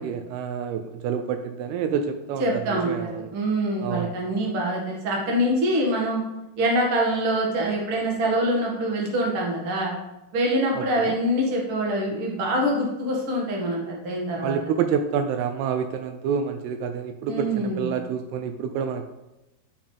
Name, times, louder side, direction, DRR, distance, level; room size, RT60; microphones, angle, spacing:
voice 1, 0.0-3.3 3.8-4.1 10.8-11.1 14.4-19.1, right 7 dB, 80° right, 7 dB, 2.5 m, -28 dB
voice 2, 2.4-6.2 6.6-9.9 10.3-14.6 17.3-17.9, right 1 dB, 45° right, -2 dB, 2.0 m, -25 dB
12.0 x 5.5 x 3.4 m, 0.96 s
omnidirectional pair, 4.7 m